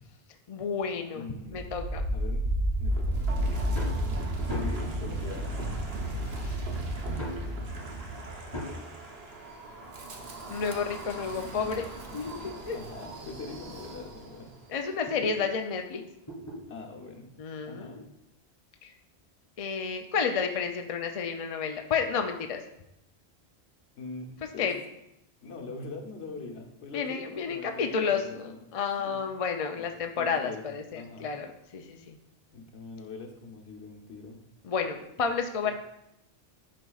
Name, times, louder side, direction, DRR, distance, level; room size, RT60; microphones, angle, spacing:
voice 1, 0.5-1.2 1.5-2.1 6.4-6.6 10.5-11.9 12.1-12.8 14.7-16.0 17.4-18.0 18.8-18.9 19.6-22.6 24.6-24.8 26.9-32.2 34.6-35.7, left 6 dB, 50° left, 5 dB, 0.4 m, -31 dB
voice 2, 1.1-1.6 2.1-2.5 2.8-5.7 12.7-14.5 16.7-17.3 17.7-18.0 23.9-24.7 25.4-28.6 29.0-29.2 29.7-29.9 30.2-31.4 32.5-34.4 35.6-35.7, left 3 dB, 80° left, 1 dB, 1.3 m, -43 dB
Wind, 1.4-14.4, right 1 dB, 65° right, 1.1 m, -33 dB
sound 1, 3.7-4.0 4.5-4.9 5.9-6.0 7.2-7.5 8.5-8.9 10.2-11.9 12.5-12.6 13.2-13.3 13.6-13.7 14.1-15.4 16.3-16.6 17.9-18.0, left 1 dB, 25° left, 2.6 m, -39 dB
11.0 x 4.1 x 2.3 m, 0.82 s
omnidirectional pair, 1.1 m